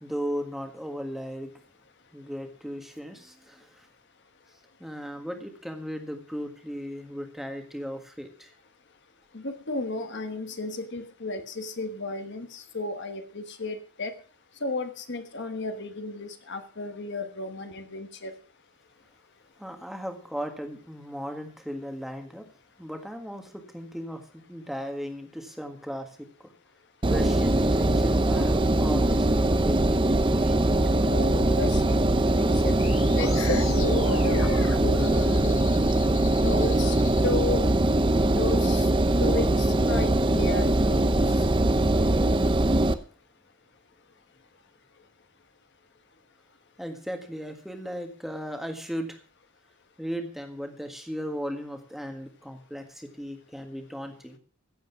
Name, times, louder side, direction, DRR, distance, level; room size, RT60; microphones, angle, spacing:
voice 1, 0.0-1.5 2.1-3.9 4.8-8.5 19.6-22.5 22.8-26.5 27.1-30.8 46.8-49.2 50.0-54.4, equal, ahead, 5 dB, 1.6 m, -36 dB
voice 2, 9.3-14.1 14.6-18.3 31.0-32.7 33.1-35.6 36.4-37.0 37.2-37.7 38.2-38.9 39.2-41.5, left 2 dB, 55° left, 8 dB, 1.3 m, -33 dB
Engine, 27.0-42.9, right 1 dB, 25° right, 0.7 m, -22 dB
sound 1, 32.8-37.2, left 6 dB, 70° left, 1.4 m, -39 dB
15.0 x 8.0 x 6.0 m, 0.41 s
head